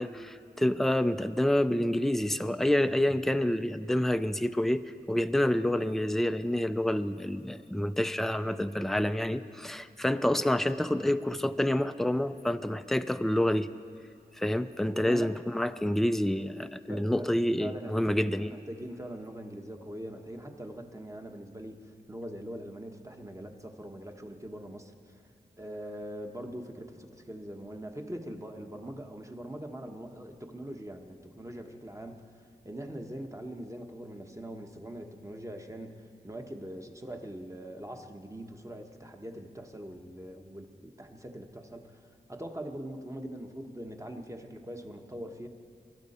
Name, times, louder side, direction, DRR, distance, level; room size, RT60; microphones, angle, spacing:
voice 1, 0.0-13.7 14.4-18.5, left 1 dB, ahead, 10 dB, 0.5 m, -28 dB
voice 2, 14.9-15.3 16.9-17.3 17.6-25.2 25.6-32.3 32.6-42.0 42.3-45.5, right 1 dB, 20° right, 4 dB, 1.2 m, -42 dB
23.0 x 12.5 x 4.3 m, 2.5 s
wide cardioid pair, 50°, 17 cm